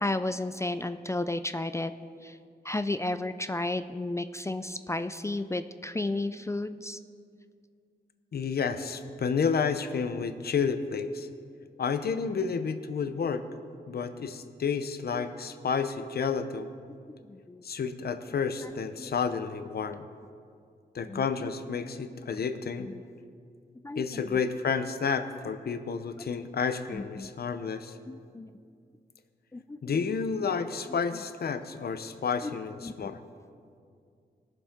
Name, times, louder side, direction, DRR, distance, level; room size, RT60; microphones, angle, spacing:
voice 1, 0.0-1.9 2.2-2.3 2.7-7.0 17.3-17.6 19.0-19.1 21.1-21.2 23.8-24.0 26.9-27.3 28.1-28.5 29.5-29.8 32.4-32.5 32.8-32.9, left 2 dB, 15° left, 10 dB, 0.4 m, -32 dB
voice 2, 8.3-11.3 11.8-13.5 13.9-16.7 17.6-20.1 20.9-22.9 24.0-28.0 29.8-33.2, left 6 dB, 70° left, 10 dB, 0.7 m, -30 dB
19.5 x 7.2 x 3.7 m, 2.3 s
wide cardioid pair, 85°, 17 cm